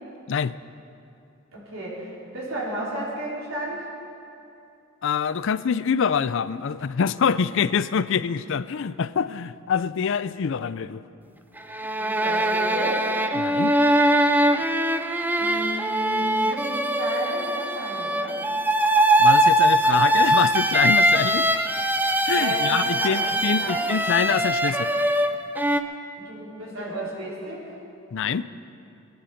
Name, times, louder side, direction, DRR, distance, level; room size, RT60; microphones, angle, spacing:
voice 1, 1.5-3.9 12.0-13.1 15.4-18.4 22.3-23.9 26.2-27.7, right 1 dB, 75° right, -6 dB, 4.7 m, -33 dB
voice 2, 5.0-11.0 13.4-13.8 19.2-21.5 22.3-24.9 28.1-28.5, left 6 dB, 65° left, 16 dB, 0.4 m, -25 dB
sound 1, 11.6-25.8, right 1 dB, 10° right, 0.6 m, -22 dB
23.5 x 10.5 x 5.2 m, 2.7 s
head